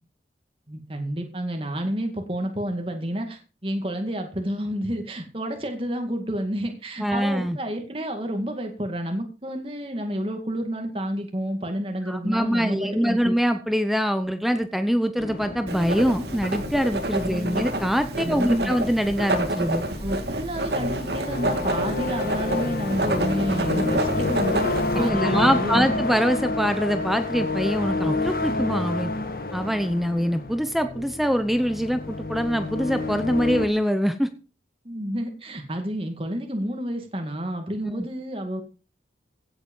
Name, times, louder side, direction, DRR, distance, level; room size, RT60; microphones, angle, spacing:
voice 1, 0.7-13.4 17.3-17.7 18.2-18.7 20.0-25.9 34.8-38.6, equal, 30° right, 4 dB, 2.2 m, -30 dB
voice 2, 7.0-7.6 12.1-19.8 25.0-29.1 29.5-34.3 37.8-38.0, equal, ahead, 9 dB, 0.8 m, -24 dB
sound 1, 15.2-33.7, left 2 dB, 55° left, 1.6 m, -30 dB
Writing, 15.7-25.1, right 1 dB, 70° right, 2.4 m, -28 dB
16.5 x 8.1 x 5.5 m, 0.35 s
head